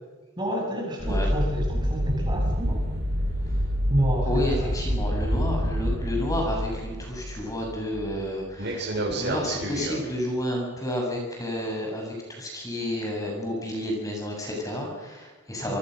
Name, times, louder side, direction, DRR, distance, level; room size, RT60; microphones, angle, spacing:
voice 1, 0.4-2.8 3.9-4.7 15.6-15.8, equal, 20° right, 0 dB, 7.2 m, -29 dB
sound 1, 1.0-8.3 8.6-10.0, equal, 55° right, 7.3 m, -27 dB
voice 2, 4.2-15.8, left 1 dB, 15° left, 0 dB, 7.4 m, -31 dB
29.0 x 25.0 x 6.6 m, 1.3 s
head